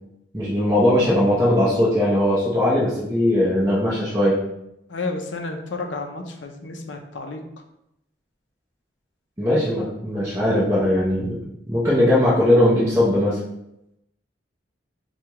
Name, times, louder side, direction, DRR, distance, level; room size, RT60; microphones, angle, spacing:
voice 1, 0.3-4.4 9.4-13.4, left 1 dB, 15° right, -9 dB, 0.8 m, -19 dB
voice 2, 4.9-7.4, left 3 dB, 80° left, 4 dB, 0.6 m, -31 dB
4.6 x 2.3 x 2.9 m, 0.82 s
head